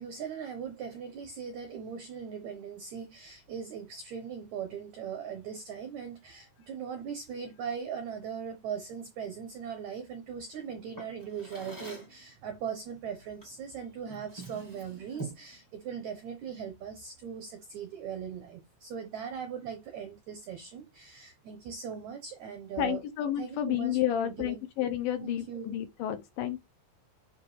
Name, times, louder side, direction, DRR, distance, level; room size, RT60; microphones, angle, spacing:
voice 1, 0.0-23.0 23.4-24.6 25.2-25.8, right 7 dB, 80° right, 1.6 m, -39 dB
Drawer open or close, 10.9-12.2 13.4-13.6 14.0-15.5, right 2 dB, 25° left, 0.4 m, -44 dB
voice 2, 22.8-26.6, left 11 dB, 80° left, 2.1 m, -31 dB
9.5 x 3.4 x 3.2 m
omnidirectional pair, 4.5 m